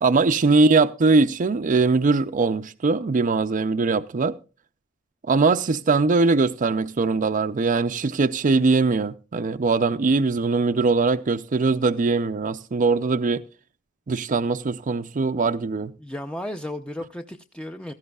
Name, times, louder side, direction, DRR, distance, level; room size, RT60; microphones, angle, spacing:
voice 1, 0.0-4.4 5.3-13.4 14.1-15.9, right 3 dB, 40° right, 0.5 m, -21 dB
voice 2, 16.0-17.9, left 1 dB, 5° left, 0.5 m, -34 dB
16.5 x 14.0 x 2.3 m
head